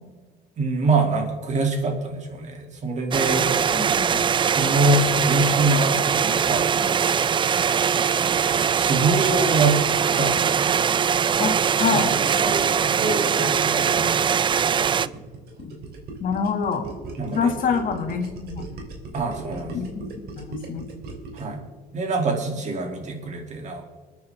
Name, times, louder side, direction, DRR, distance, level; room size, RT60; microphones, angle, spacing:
voice 1, 0.6-3.5 4.5-7.1 8.1-9.8 10.2-10.8 12.0-14.2 17.2-17.5 17.8-18.0 19.1-19.8 21.3-21.6 21.9-23.8, right 2 dB, 45° right, 3 dB, 2.7 m, -25 dB
sound 1, 3.1-15.1, right 7 dB, 30° right, 0.4 m, -22 dB
voice 2, 3.7-4.2 11.4-12.1 15.6-15.7 16.2-16.9 17.3-18.6 19.7-20.0 20.4-20.9, left 6 dB, 55° left, 4 dB, 2.0 m, -26 dB
Gurgling, 14.5-21.6, right 2 dB, 70° right, 3.2 m, -38 dB
25.5 x 9.5 x 3.5 m, 1.4 s
cardioid pair, 110°, 17 cm